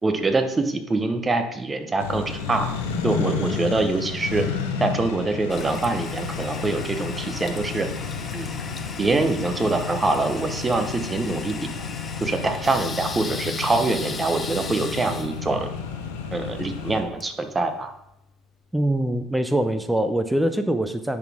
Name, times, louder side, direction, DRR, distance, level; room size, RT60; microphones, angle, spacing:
voice 1, 0.0-2.7 3.0-4.5 4.8-7.9 8.3-8.5 9.0-11.7 12.2-15.7 16.3-17.9, right 3 dB, 25° right, 7 dB, 0.9 m, -24 dB
Accelerating revving vroom, 2.0-17.0, left 5 dB, 85° left, 0.9 m, -31 dB
Toilet flush, 5.5-18.1, left 5 dB, 30° left, 0.6 m, -38 dB
voice 2, 18.7-21.2, right 1 dB, 5° right, 10 dB, 0.5 m, -23 dB
10.5 x 4.1 x 3.6 m, 0.84 s
hypercardioid pair, 75°, 0 cm